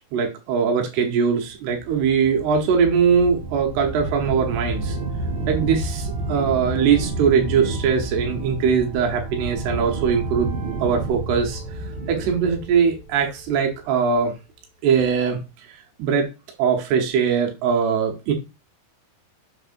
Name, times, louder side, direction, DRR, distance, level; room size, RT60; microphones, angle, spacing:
voice 1, 0.1-5.0 5.5-11.8 12.1-14.3 14.8-16.3 16.6-18.3, right 6 dB, 85° right, 3 dB, 3.2 m, -21 dB
sound 1, 1.8-13.8, right 2 dB, 55° right, 1.2 m, -30 dB
7.8 x 6.6 x 2.6 m, 0.28 s
omnidirectional pair, 4.5 m